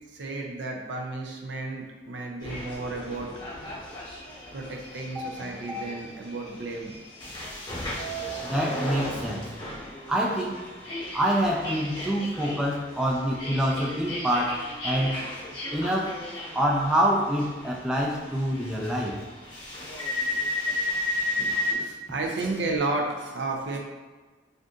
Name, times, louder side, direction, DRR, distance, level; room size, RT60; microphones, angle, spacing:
voice 1, 0.1-3.3 4.5-6.9 21.8-23.8, right 3 dB, 75° right, 1 dB, 0.5 m, -32 dB
sound 1, 2.4-21.7, left 1 dB, 25° left, 0.8 m, -35 dB
voice 2, 8.4-9.5 10.1-10.7 11.1-15.2 15.7-16.2 16.5-19.2 21.4-21.9, equal, 5° right, -2 dB, 0.3 m, -26 dB
2.6 x 2.6 x 3.6 m, 1.3 s
head